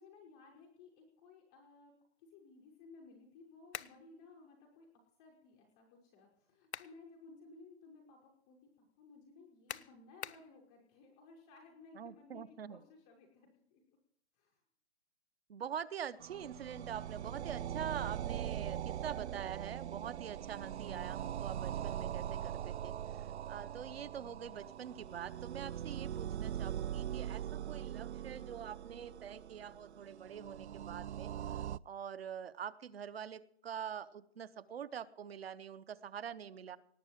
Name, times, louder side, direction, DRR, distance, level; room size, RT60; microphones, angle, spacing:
voice 1, 0.0-1.9 2.2-4.9 5.2-13.8 14.4-14.6, left 3 dB, 5° left, -1 dB, 0.4 m, -58 dB
sound 1, 3.7-4.0 6.4-7.0 7.5-7.6 9.7-10.5, left 9 dB, 90° left, 0.8 m, -45 dB
voice 2, 11.9-12.8 15.5-36.8, right 8 dB, 65° right, 15 dB, 0.9 m, -45 dB
sound 2, 16.2-31.8, right 10 dB, 85° right, 0.5 m, -41 dB
18.5 x 7.5 x 7.3 m, 0.69 s
hypercardioid pair, 165°, 33 cm